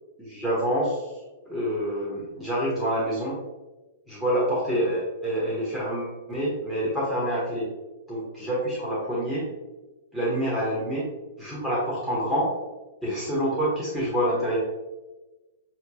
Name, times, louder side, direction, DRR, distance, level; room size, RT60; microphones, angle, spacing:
voice 1, 0.2-1.1 1.5-3.4 4.1-7.7 8.1-9.5 10.1-11.1 11.4-12.5 13.0-14.6, equal, ahead, -8 dB, 1.4 m, -27 dB
6.3 x 3.1 x 2.4 m, 1.1 s
hypercardioid pair, 120°, 0 cm